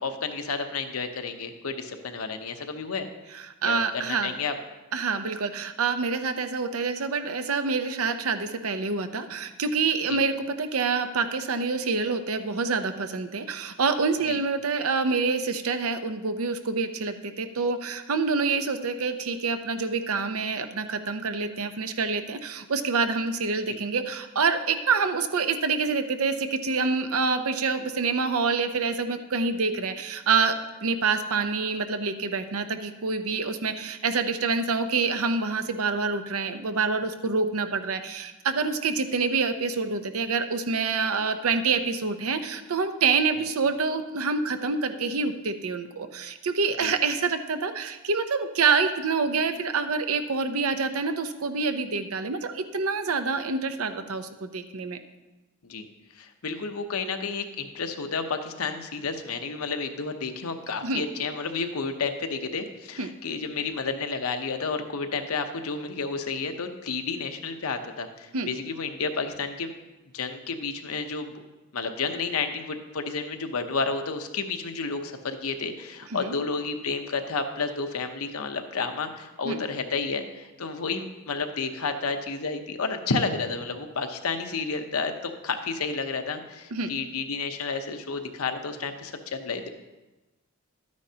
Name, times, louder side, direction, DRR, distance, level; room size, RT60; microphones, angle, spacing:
voice 1, 0.0-3.1 3.6-4.5 10.1-10.2 14.3-14.4 23.7-23.8 46.8-46.9 55.7-55.9 56.1-69.7 70.1-71.3 71.7-89.7, left 4 dB, 80° left, 6 dB, 0.8 m, -31 dB
voice 2, 3.3-4.3 4.9-55.0 60.8-61.0 63.0-63.1 68.3-68.5 76.2-76.3 79.4-79.6 86.7-86.9, right 4 dB, 75° right, 8 dB, 0.7 m, -27 dB
12.5 x 9.5 x 2.8 m, 1.1 s
head